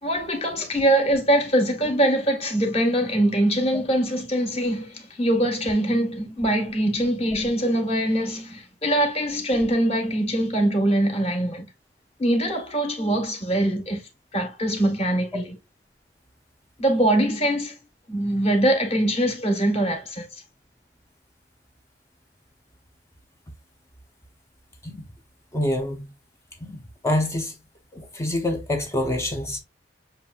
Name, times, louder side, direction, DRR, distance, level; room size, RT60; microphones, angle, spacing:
voice 1, 0.0-11.7 12.2-14.0 14.3-15.5 16.8-17.7 18.1-20.3, right 1 dB, 35° left, 1.4 m, -23 dB
voice 2, 25.5-26.1 26.6-27.6 27.9-29.6, left 1 dB, 15° left, 0.7 m, -26 dB
6.9 x 2.7 x 2.4 m
head